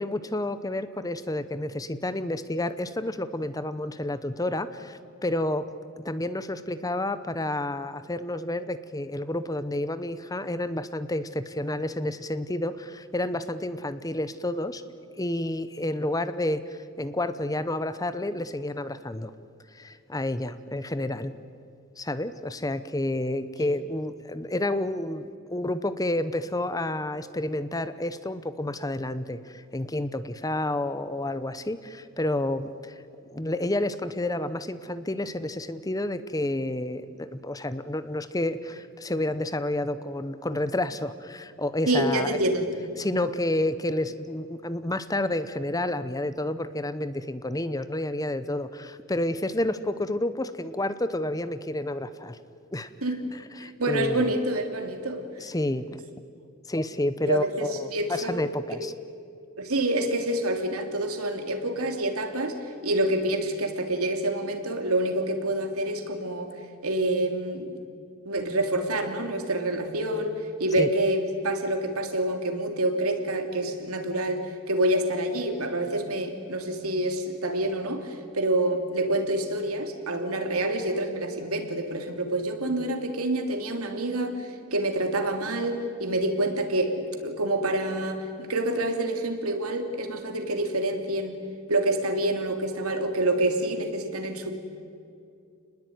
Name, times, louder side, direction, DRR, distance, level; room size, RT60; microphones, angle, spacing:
voice 1, 0.0-5.7 6.0-14.8 15.1-19.3 19.7-21.3 22.0-32.9 33.3-42.4 43.0-52.4 52.7-52.9 53.3-54.3 55.4-56.0 56.7-58.9 70.8-70.9, left 1 dB, 15° left, 13 dB, 0.8 m, -30 dB
voice 2, 41.9-42.7 53.0-53.3 53.6-55.2 57.2-58.4 58.7-58.9 59.6-66.5 66.8-67.8 68.2-70.3 70.6-91.4 91.7-94.5, right 1 dB, 80° right, 5 dB, 3.1 m, -27 dB
29.0 x 20.5 x 9.4 m, 2.5 s
head